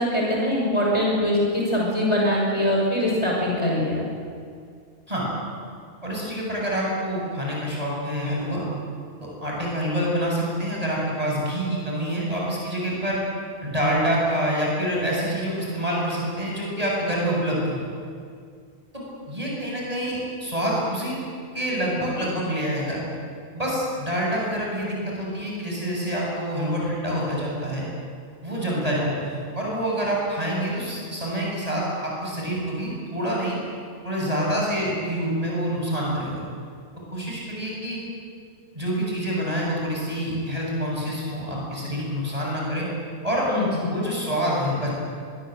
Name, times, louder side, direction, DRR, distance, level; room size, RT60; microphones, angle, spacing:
voice 1, 0.0-4.0 43.5-44.0, left 1 dB, 25° left, -4 dB, 6.4 m, -23 dB
voice 2, 6.0-8.6 9.2-13.2 13.6-17.8 18.9-21.2 21.5-23.0 23.5-27.9 28.4-33.6 34.0-36.5 37.1-38.0 38.7-42.9 43.2-43.5 43.8-44.9, equal, 30° right, -4 dB, 7.8 m, -26 dB
24.5 x 22.0 x 8.0 m, 2.2 s
omnidirectional pair, 1.3 m